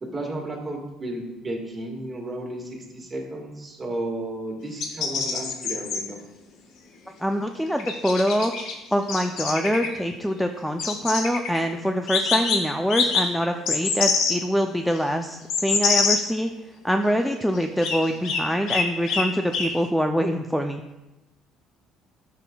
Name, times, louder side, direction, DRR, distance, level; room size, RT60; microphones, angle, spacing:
voice 1, 0.0-6.2, right 1 dB, 20° right, 0 dB, 1.6 m, -33 dB
sound 1, 4.8-6.0 7.8-8.7 9.0-9.9 10.8-11.6 12.1-12.6 12.9-13.2 13.7-14.3 15.0-15.1 15.5-16.2 17.8-18.0 18.2-18.4 18.7-19.2 19.5-19.7, left 5 dB, 70° left, 1.3 m, -24 dB
voice 2, 7.2-8.5 8.9-16.5 16.8-20.8, equal, ahead, 5 dB, 0.3 m, -24 dB
12.0 x 5.8 x 2.3 m, 1.0 s
cardioid pair, 130°, 0 cm